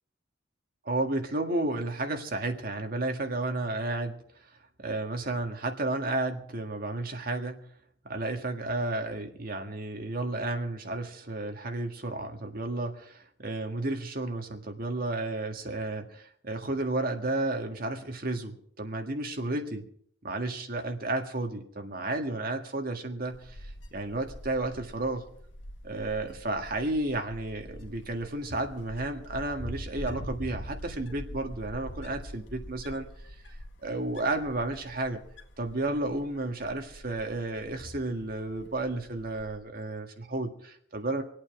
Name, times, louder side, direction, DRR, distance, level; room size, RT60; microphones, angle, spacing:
voice 1, 0.9-4.2 4.8-7.7 8.1-19.8 20.2-25.3 25.8-33.1 33.8-35.2 35.6-41.2, right 2 dB, 50° right, 4 dB, 1.8 m, -32 dB
Wind, 23.3-39.6, equal, 75° left, 1.7 m, -44 dB
25.5 x 8.7 x 4.8 m, 0.64 s
head